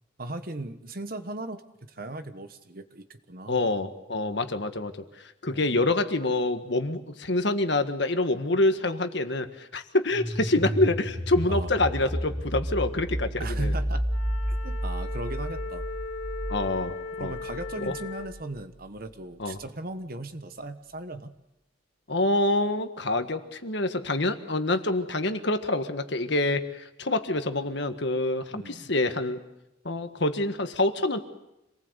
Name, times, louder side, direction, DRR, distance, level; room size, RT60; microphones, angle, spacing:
voice 1, 0.2-3.6 5.5-5.8 11.5-11.7 13.4-14.1 14.5-15.8 17.2-21.4 28.5-28.9, right 2 dB, 45° right, 10 dB, 1.3 m, -38 dB
voice 2, 3.5-4.9 5.2-13.7 16.5-17.3 19.4-19.6 22.1-29.4 29.8-31.2, left 2 dB, 60° left, 8 dB, 1.6 m, -26 dB
sound 1, 10.1-18.8, equal, 30° right, 3.9 m, -31 dB
Wind instrument woodwind instrument, 14.1-18.4, left 4 dB, 80° left, 3.1 m, -38 dB
26.5 x 19.5 x 8.2 m, 0.91 s
head